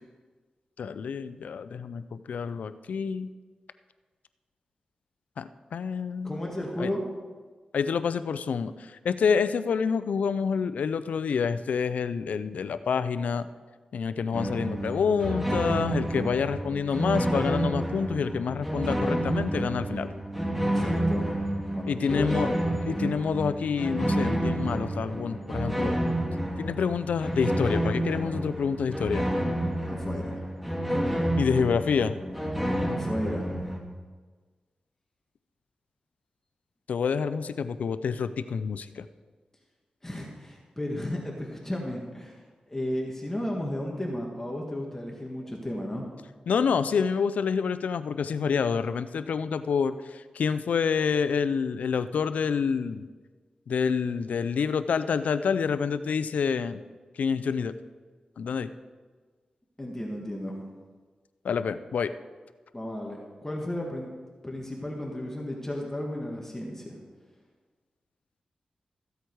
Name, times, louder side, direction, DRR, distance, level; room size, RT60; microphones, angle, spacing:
voice 1, 0.8-3.3 5.4-6.4 6.8-6.9 7.7-13.5 13.9-20.1 21.9-22.5 22.8-25.9 26.6-29.3 31.4-32.1 36.9-39.1 46.5-53.1 53.7-56.8 57.2-57.7 58.4-58.7 61.4-62.1, left 6 dB, 85° left, 13 dB, 0.5 m, -27 dB
voice 2, 6.2-7.0 20.6-21.3 21.7-22.3 29.9-30.5 32.9-33.5 40.0-46.1 59.8-60.6 62.7-64.1 64.4-67.0, left 1 dB, 15° left, -1 dB, 1.7 m, -34 dB
sound 1, 14.3-33.8, right 1 dB, 5° right, 1.9 m, -29 dB
14.5 x 8.1 x 4.7 m, 1.4 s
cardioid pair, 65°, 2 cm